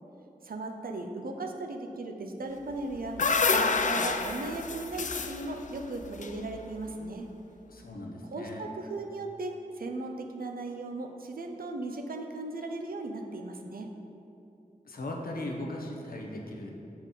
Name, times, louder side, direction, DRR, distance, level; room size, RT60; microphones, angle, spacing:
voice 1, 0.4-3.2 3.5-7.3 8.3-13.9, right 2 dB, 80° right, 3 dB, 0.6 m, -37 dB
sound 1, 2.7-7.0, left 4 dB, 55° left, 0.4 m, -29 dB
voice 2, 7.7-8.7 14.9-16.7, left 1 dB, 75° left, 0 dB, 0.9 m, -38 dB
7.1 x 4.3 x 4.0 m, 2.8 s
cardioid pair, 45°, 15 cm